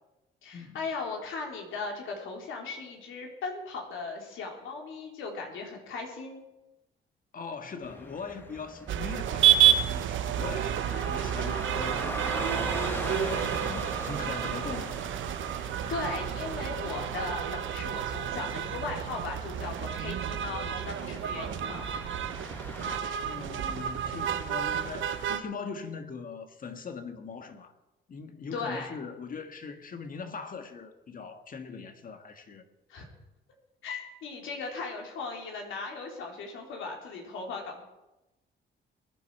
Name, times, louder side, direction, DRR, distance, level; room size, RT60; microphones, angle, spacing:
voice 1, 0.4-6.5 11.0-11.1 15.6-21.9 28.5-28.9 32.9-33.1 33.8-37.8, left 4 dB, 80° left, 3.5 m, -37 dB
voice 2, 7.3-15.0 23.2-27.7 28.1-32.7, left 5 dB, 45° left, 1.7 m, -41 dB
sound 1, 7.8-23.0, left 1 dB, 10° left, 1.5 m, -41 dB
sound 2, 8.9-25.4, right 11 dB, 75° right, 0.9 m, -30 dB
22.0 x 10.0 x 4.8 m
cardioid pair, 90°, 20 cm